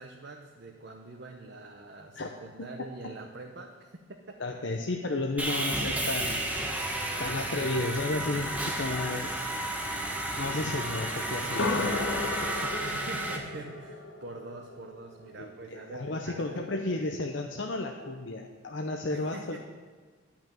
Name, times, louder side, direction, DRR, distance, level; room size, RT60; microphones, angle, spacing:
voice 1, 0.0-4.0 6.4-6.6 12.8-16.8 19.1-19.6, right 2 dB, 55° right, 2 dB, 0.9 m, -44 dB
voice 2, 4.4-6.5 7.2-9.4 10.4-12.7 15.4-19.6, left 2 dB, 65° left, 2 dB, 0.7 m, -33 dB
Sawing, 5.4-13.4, right 1 dB, 10° right, 1.2 m, -32 dB
sound 1, 11.4-15.4, left 3 dB, 90° left, 1.3 m, -34 dB
11.0 x 5.9 x 9.0 m, 1.5 s
head